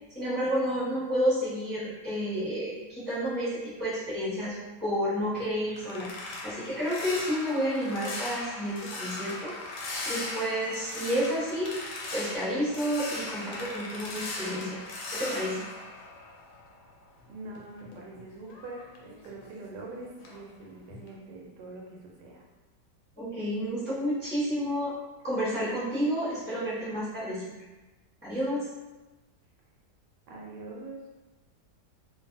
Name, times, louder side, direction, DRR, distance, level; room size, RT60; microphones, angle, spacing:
voice 1, 0.1-6.1 6.4-9.5 10.0-11.7 12.1-14.8 15.1-15.6 23.2-24.9 25.2-27.5 28.2-28.7, equal, 10° left, -12 dB, 0.8 m, -30 dB
sound 1, 5.2-16.9 17.2-19.9 20.2-20.5 20.9-21.1, left 2 dB, 80° left, 1.2 m, -39 dB
voice 2, 17.3-22.4 30.3-31.1, right 2 dB, 80° right, -2 dB, 1.2 m, -44 dB
2.6 x 2.6 x 2.5 m, 1.1 s
omnidirectional pair, 1.8 m